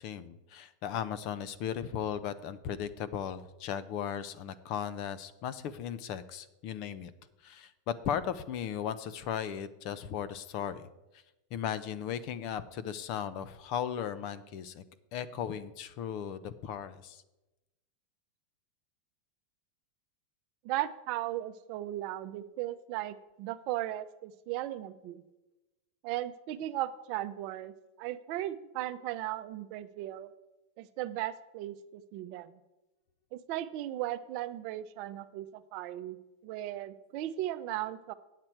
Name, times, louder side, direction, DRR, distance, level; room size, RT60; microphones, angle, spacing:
voice 1, 0.0-7.1 7.4-10.9 11.5-14.8 15.1-17.2, left 9 dB, 50° left, 16 dB, 0.6 m, -36 dB
voice 2, 20.6-25.2 26.0-30.3 30.8-32.6 33.3-36.2 36.4-38.1, right 14 dB, 55° right, 12 dB, 0.5 m, -37 dB
8.7 x 7.5 x 4.5 m, 1.0 s
hypercardioid pair, 110°, 0 cm